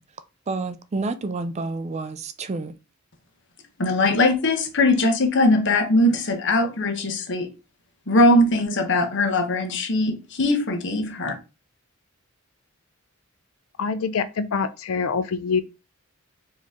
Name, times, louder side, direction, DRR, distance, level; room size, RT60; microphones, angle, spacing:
voice 1, 0.5-2.7, right 3 dB, 35° right, 0.4 m, -29 dB
voice 2, 3.8-7.5 8.1-11.3, left 1 dB, 60° left, 1.0 m, -20 dB
voice 3, 13.8-15.6, left 5 dB, 80° left, 0.4 m, -25 dB
4.5 x 3.1 x 3.5 m
head